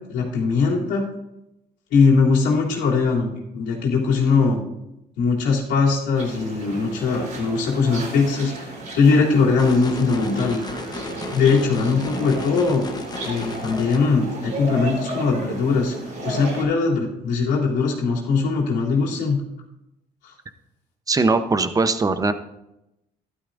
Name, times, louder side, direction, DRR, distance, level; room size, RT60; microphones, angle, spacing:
voice 1, 0.1-1.0 1.9-4.6 5.2-10.6 11.3-12.9 13.2-15.9 16.2-19.4, left 4 dB, 90° left, -4 dB, 3.1 m, -20 dB
sound 1, 6.2-16.6, right 2 dB, 50° right, 4.3 m, -33 dB
sound 2, 9.6-14.0, left 4 dB, 25° left, 1.0 m, -36 dB
voice 2, 21.1-22.3, right 3 dB, 20° right, 10 dB, 0.8 m, -20 dB
13.0 x 12.0 x 2.6 m, 0.88 s
cardioid pair, 110°, 17 cm